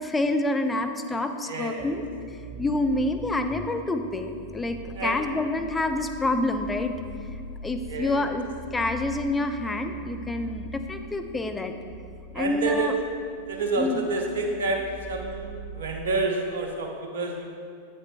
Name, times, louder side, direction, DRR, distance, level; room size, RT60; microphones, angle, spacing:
voice 1, 0.0-2.0 2.6-6.9 7.6-11.7 12.3-12.9 13.8-14.1, left 2 dB, 10° left, 6 dB, 0.4 m, -27 dB
voice 2, 1.5-1.9 5.0-5.2 7.9-8.2 12.3-12.9 13.5-14.8 15.1-17.5, right 3 dB, 60° right, 2 dB, 0.9 m, -28 dB
sound 1, 1.8-16.3, right 3 dB, 15° right, 0.9 m, -42 dB
8.0 x 6.6 x 2.9 m, 2.3 s
figure-of-eight pair, 90°, 0 cm